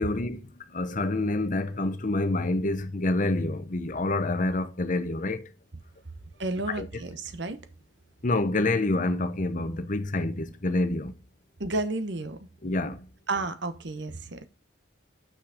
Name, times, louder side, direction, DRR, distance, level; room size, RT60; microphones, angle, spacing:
voice 1, 0.0-5.5 6.8-6.9 8.2-11.1 12.6-13.1, left 2 dB, 40° left, 0.8 m, -27 dB
voice 2, 6.4-7.6 11.6-12.5 13.3-14.5, right 2 dB, 60° right, 1.0 m, -31 dB
6.5 x 6.2 x 5.0 m
head